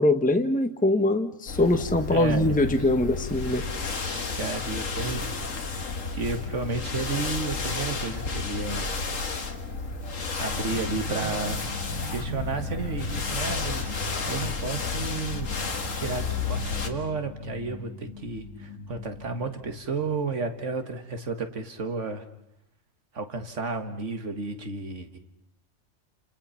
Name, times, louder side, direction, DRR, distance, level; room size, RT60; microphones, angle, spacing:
voice 1, 0.0-3.6, left 1 dB, 5° left, 7 dB, 1.1 m, -23 dB
sound 1, 1.5-16.9, left 4 dB, 85° left, 2.1 m, -32 dB
voice 2, 2.1-2.8 4.0-5.2 6.1-8.9 10.4-11.7 12.1-15.5 15.9-22.2 23.1-25.2, right 4 dB, 70° right, 7 dB, 2.2 m, -32 dB
sound 2, 10.7-20.9, left 1 dB, 65° left, 2.4 m, -39 dB
29.5 x 27.5 x 5.8 m, 0.75 s
omnidirectional pair, 1.3 m